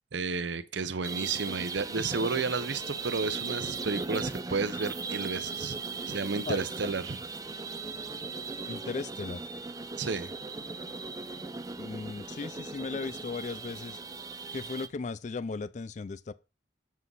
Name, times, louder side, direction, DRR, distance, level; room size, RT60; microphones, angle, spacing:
voice 1, 0.1-5.8 6.1-7.2 10.0-10.3, right 4 dB, 80° right, 0.8 m, -32 dB
sound 1, 1.0-14.9, right 4 dB, 20° right, 0.5 m, -38 dB
voice 2, 6.5-6.9 8.7-9.5 11.8-14.0 14.5-16.3, left 4 dB, 40° left, 0.4 m, -37 dB
7.6 x 6.1 x 5.4 m
head